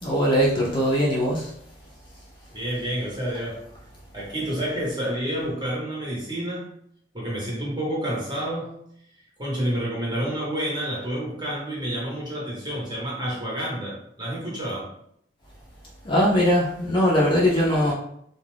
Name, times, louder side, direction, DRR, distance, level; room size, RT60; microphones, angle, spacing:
voice 1, 0.0-1.5 16.0-17.9, equal, 25° left, -4 dB, 0.4 m, -21 dB
voice 2, 2.5-3.6 4.1-6.7 7.1-8.8 9.4-14.9, right 1 dB, 25° right, -5 dB, 1.0 m, -29 dB
2.4 x 2.2 x 3.2 m, 0.71 s
head